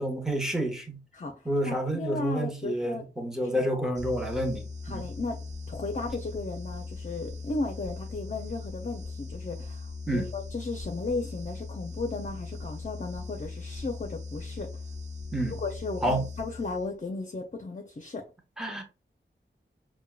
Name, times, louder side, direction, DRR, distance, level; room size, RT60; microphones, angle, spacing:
voice 1, 0.0-1.0 1.4-5.1 10.1-10.3 15.3-15.6 16.0-16.2 18.6-18.8, right 1 dB, ahead, 0.9 m, -29 dB
voice 2, 1.1-3.0 3.4-3.7 4.8-14.7 15.5-18.3, left 3 dB, 40° left, 0.5 m, -35 dB
sound 1, 4.0-17.1, left 3 dB, 35° right, 1.0 m, -39 dB
4.5 x 2.2 x 2.3 m
wide cardioid pair, 50°, 21 cm